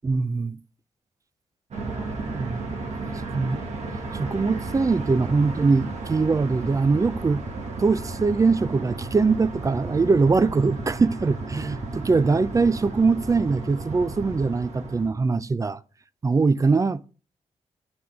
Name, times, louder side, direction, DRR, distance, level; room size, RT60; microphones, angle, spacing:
voice 1, 0.0-0.6 2.3-2.6 3.3-3.6 4.1-7.4 7.8-15.8 16.2-17.0, right 4 dB, 25° right, 0.4 m, -22 dB
sound 1, 1.7-15.1, right 3 dB, 70° right, 1.8 m, -33 dB
7.9 x 5.8 x 3.6 m
cardioid pair, 65°, 12 cm